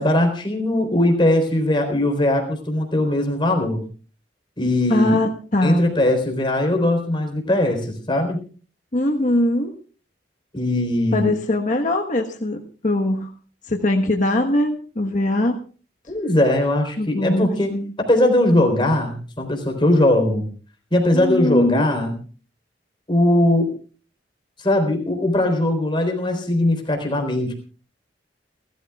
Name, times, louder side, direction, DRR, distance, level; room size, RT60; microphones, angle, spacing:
voice 1, 0.0-3.8 4.6-5.2 5.6-8.4 10.5-11.3 16.1-17.7 18.1-20.4 20.9-22.2 23.1-23.7 24.6-27.5, left 1 dB, 25° left, 3 dB, 3.9 m, -20 dB
voice 2, 4.9-5.9 8.9-9.7 11.1-12.6 12.8-13.3 13.6-15.6 17.0-17.9 21.1-21.9, left 1 dB, 45° left, 2 dB, 1.3 m, -21 dB
30.0 x 13.5 x 2.4 m, 0.38 s
head